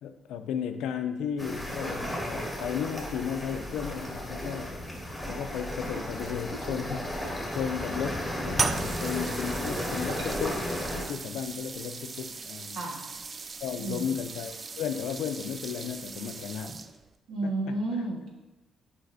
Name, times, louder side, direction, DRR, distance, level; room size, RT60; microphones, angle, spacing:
voice 1, 0.0-4.8 5.3-12.8 13.6-16.7 17.4-17.8, left 8 dB, 90° left, 9 dB, 0.4 m, -35 dB
sound 1, 1.4-11.0, equal, 5° left, 1.6 m, -34 dB
sound 2, 8.6-17.2, right 4 dB, 40° right, 0.3 m, -37 dB
voice 2, 13.8-14.1 17.3-18.3, right 2 dB, 80° right, -1 dB, 1.5 m, -31 dB
8.0 x 5.1 x 2.6 m, 1.0 s
cardioid pair, 90°, 0 cm